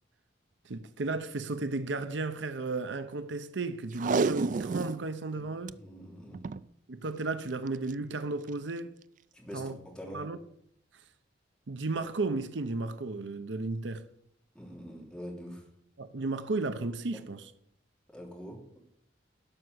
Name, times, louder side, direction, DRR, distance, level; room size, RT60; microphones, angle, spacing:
voice 1, 0.6-5.8 6.9-9.0 9.5-9.8 10.1-10.4 11.7-14.1 16.0-17.5, right 3 dB, 70° right, 0.7 m, -34 dB
Packing tape duct tape, 3.9-5.0 5.4-5.5 5.7-5.8 6.3-6.7 7.7-7.9 8.5-8.6, right 4 dB, 45° right, 0.4 m, -30 dB
voice 2, 5.7-6.4 9.3-10.2 14.5-15.6 17.1-17.2 18.1-18.6, equal, 5° left, 3.2 m, -44 dB
12.5 x 5.7 x 8.0 m
head